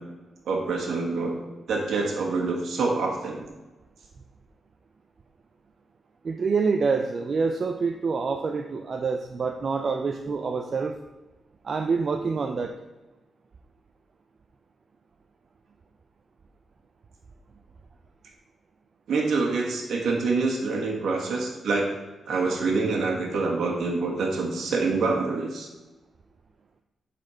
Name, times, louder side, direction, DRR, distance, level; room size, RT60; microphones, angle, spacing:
voice 1, 0.4-1.3 1.7-3.4 19.1-21.9 22.3-25.7, right 3 dB, 70° right, -1 dB, 1.3 m, -26 dB
voice 2, 6.2-11.0 11.6-12.7, right 4 dB, 40° right, 5 dB, 0.4 m, -26 dB
7.8 x 4.2 x 5.6 m, 1.1 s
wide cardioid pair, 155°, 0 cm